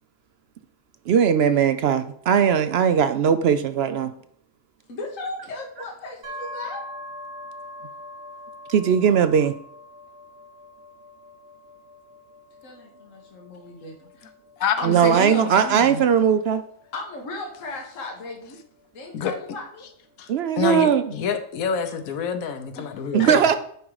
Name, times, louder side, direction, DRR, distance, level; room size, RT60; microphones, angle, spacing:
voice 1, 1.1-4.1 8.7-9.5 14.8-16.6 20.3-21.1 23.1-23.6, right 8 dB, 65° right, 10 dB, 0.6 m, -19 dB
voice 2, 4.9-6.8 12.6-14.3 14.8-15.3 16.9-18.6 18.9-19.9 22.7-23.3, left 2 dB, 65° left, 0 dB, 1.7 m, -36 dB
sound 1, 6.2-19.9, left 1 dB, 30° right, 1.9 m, -43 dB
voice 3, 14.6-16.0 19.1-19.3 20.2-20.3 20.6-23.6, left 7 dB, 90° left, 8 dB, 1.2 m, -27 dB
10.0 x 3.7 x 4.8 m, 0.66 s
omnidirectional pair, 1.4 m